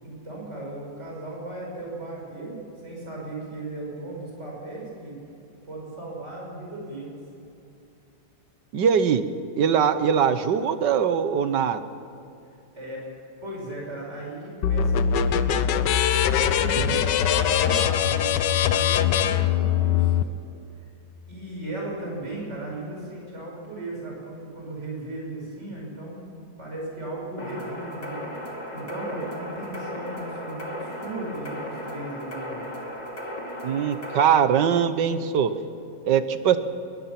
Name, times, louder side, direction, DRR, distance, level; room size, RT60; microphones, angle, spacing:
voice 1, 0.0-5.1 5.6-7.2 12.7-13.0 13.4-15.9 16.2-17.0 17.3-20.2 21.3-28.4 28.7-32.6, right 2 dB, 40° right, -3 dB, 6.3 m, -36 dB
voice 2, 8.7-9.3 9.6-11.8 16.8-17.0 33.6-35.5 36.0-36.6, right 8 dB, 80° right, 11 dB, 1.7 m, -21 dB
sound 1, 14.6-20.2, left 9 dB, 85° left, 1.5 m, -22 dB
sound 2, 27.4-34.2, equal, 25° left, 2.6 m, -36 dB
22.0 x 21.0 x 5.9 m, 2.8 s
omnidirectional pair, 1.8 m